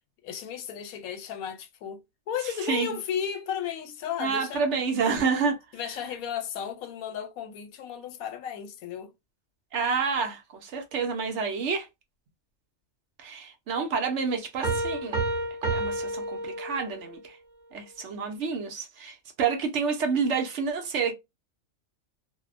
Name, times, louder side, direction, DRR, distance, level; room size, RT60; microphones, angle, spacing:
voice 1, 0.2-2.0 2.3-4.6 5.7-9.1, left 8 dB, 90° left, 1.1 m, -34 dB
voice 2, 2.7-3.0 4.2-5.6 9.7-11.9 13.2-15.2 15.7-17.4 17.7-21.1, right 5 dB, 65° right, 1.0 m, -28 dB
sound 1, 14.6-17.1, right 2 dB, 40° right, 1.0 m, -30 dB
2.7 x 2.1 x 2.4 m
omnidirectional pair, 1.4 m